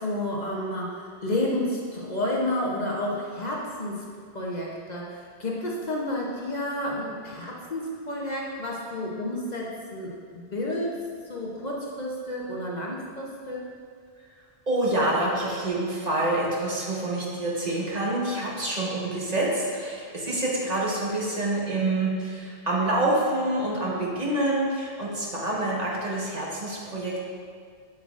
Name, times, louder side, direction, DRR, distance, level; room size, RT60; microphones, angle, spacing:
voice 1, 0.0-4.0 4.3-11.0 11.3-13.6, left 1 dB, 45° left, -3 dB, 0.9 m, -30 dB
voice 2, 14.7-27.2, right 1 dB, 40° right, -5 dB, 1.3 m, -27 dB
7.7 x 7.2 x 2.5 m, 2.1 s
omnidirectional pair, 1.0 m